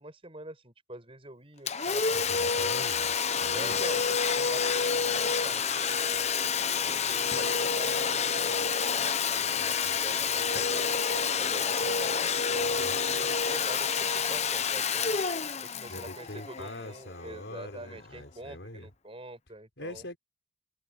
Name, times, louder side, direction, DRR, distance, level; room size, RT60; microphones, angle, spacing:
voice 1, 0.0-2.8 3.5-8.7 9.3-15.2 15.7-20.1, right 1 dB, 30° right, 6.9 m, -45 dB
Domestic sounds home sounds, 1.7-17.1, left 6 dB, 35° left, 0.9 m, -28 dB
voice 2, 2.1-3.8 15.9-18.9 19.8-20.2, left 1 dB, 80° left, 4.8 m, -43 dB
head